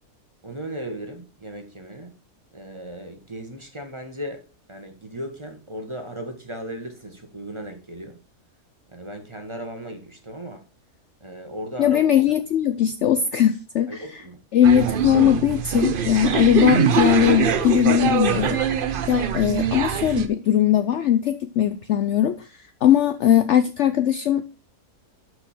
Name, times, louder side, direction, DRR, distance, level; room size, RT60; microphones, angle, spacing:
voice 1, 0.4-2.1 2.5-8.2 8.9-10.6 11.2-12.0 13.9-14.4, equal, 20° right, 5 dB, 1.2 m, -36 dB
voice 2, 11.8-14.0 14.5-18.6 19.1-22.5 22.8-24.5, left 10 dB, 70° left, 11 dB, 0.7 m, -19 dB
sound 1, 14.6-20.3, right 7 dB, 50° right, 0.6 m, -23 dB
12.0 x 4.8 x 4.3 m, 0.34 s
omnidirectional pair, 1.6 m